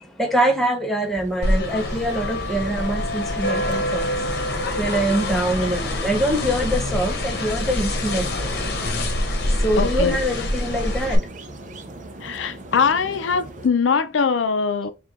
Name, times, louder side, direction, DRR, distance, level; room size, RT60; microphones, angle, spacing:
voice 1, 0.2-4.0 4.8-8.3 9.6-11.2, right 1 dB, ahead, 0.7 m, -24 dB
sound 1, 1.0-13.7, right 1 dB, 40° right, 0.5 m, -39 dB
sound 2, 1.4-11.1, left 1 dB, 55° left, 1.0 m, -25 dB
voice 2, 9.8-10.2 12.2-14.9, left 5 dB, 80° left, 0.5 m, -22 dB
4.6 x 2.4 x 3.5 m
head